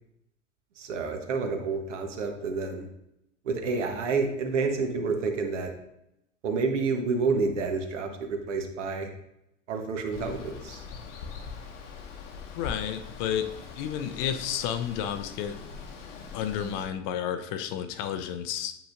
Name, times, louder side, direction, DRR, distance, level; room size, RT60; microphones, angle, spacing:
voice 1, 0.8-2.9 3.4-5.7 6.4-9.1 9.7-10.8, right 4 dB, 70° right, 1.0 m, -29 dB
Water, 10.1-16.9, left 6 dB, 70° left, 1.0 m, -42 dB
voice 2, 12.6-15.6 16.3-18.8, left 9 dB, 45° left, 0.5 m, -31 dB
7.1 x 5.8 x 2.5 m
figure-of-eight pair, 80°, 37 cm